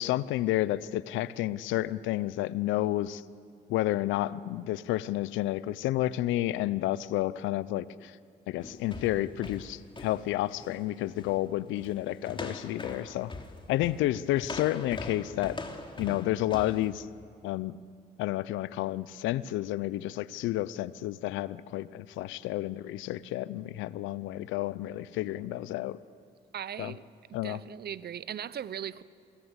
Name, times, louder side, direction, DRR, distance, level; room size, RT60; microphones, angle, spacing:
voice 1, 0.0-3.2 3.7-8.2 8.5-13.3 13.7-15.6 16.0-17.1 17.4-17.8 18.2-26.0 26.8-26.9 27.3-27.6, left 15 dB, 80° left, 0.7 m, -30 dB
sound 1, 8.6-10.8 11.2-11.4 11.8-12.0 12.3-16.9, left 2 dB, 25° left, 3.2 m, -41 dB
voice 2, 26.5-27.0 27.3-29.0, right 9 dB, 55° right, 0.9 m, -38 dB
27.5 x 20.5 x 8.2 m
supercardioid pair, 60°, 20 cm